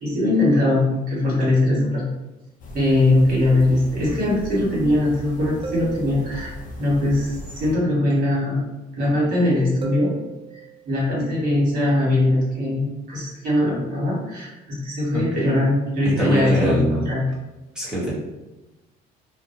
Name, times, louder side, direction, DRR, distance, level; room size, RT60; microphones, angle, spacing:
voice 1, 0.0-2.0 2.7-8.6 8.9-10.1 10.5-17.2, left 1 dB, 60° right, -5 dB, 1.4 m, -21 dB
sound 1, 2.6-7.7, equal, 50° left, 0.5 m, -37 dB
sound 2, 5.6-6.8 9.8-10.9, right 5 dB, 30° right, 0.4 m, -35 dB
voice 2, 16.0-17.1 17.7-18.1, equal, 5° right, -8 dB, 1.1 m, -23 dB
2.6 x 2.1 x 2.7 m, 1.0 s
cardioid pair, 110°, 17 cm